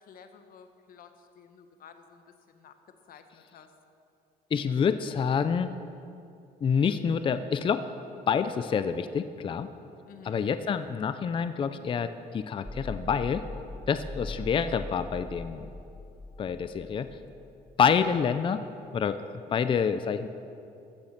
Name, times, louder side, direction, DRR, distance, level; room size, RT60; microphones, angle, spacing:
voice 1, 0.0-2.7 3.1-3.7 10.1-10.4, left 7 dB, 60° left, 7 dB, 1.2 m, -52 dB
voice 2, 4.5-5.7 6.6-7.8 8.3-9.7 10.2-13.4 13.9-15.7 16.4-17.1 17.8-18.6 18.9-19.2 19.5-20.3, left 6 dB, 30° left, 11 dB, 0.5 m, -27 dB
sound 1, 12.6-18.1, left 1 dB, 5° left, 1.4 m, -41 dB
14.5 x 7.2 x 6.5 m, 2.6 s
cardioid pair, 110°, 17 cm